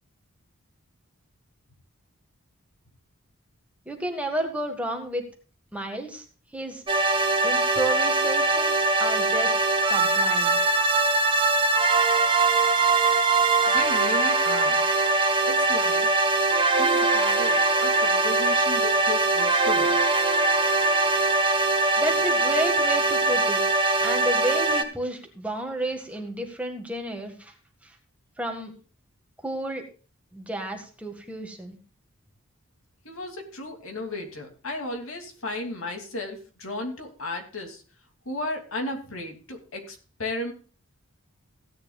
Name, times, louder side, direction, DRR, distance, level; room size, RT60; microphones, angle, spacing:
voice 1, 3.9-5.2 5.7-6.3 6.5-6.8 7.4-10.6 22.0-27.5 27.8-28.0 28.4-28.7 29.4-29.8 30.3-31.8, right 1 dB, 5° right, 2 dB, 1.8 m, -31 dB
sound 1, 6.9-24.8, right 3 dB, 25° right, 1.4 m, -22 dB
voice 2, 13.7-14.9 15.5-16.1 16.8-20.0 33.0-37.8 38.2-40.5, left 2 dB, 70° left, 3 dB, 2.8 m, -34 dB
16.5 x 10.5 x 2.4 m, 0.37 s
head